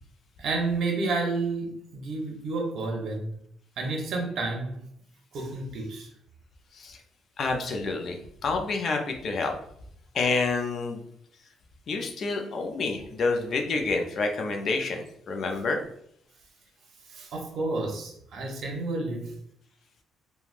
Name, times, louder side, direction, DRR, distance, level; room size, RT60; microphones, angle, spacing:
voice 1, 0.4-3.3 3.8-4.8 5.3-6.1 17.1-19.3, right 3 dB, 65° right, 1 dB, 0.8 m, -30 dB
voice 2, 7.4-9.5 10.1-11.0 11.9-15.8, left 3 dB, 55° left, 3 dB, 0.5 m, -28 dB
3.2 x 2.2 x 2.5 m, 0.70 s
cardioid pair, 105°, 0 cm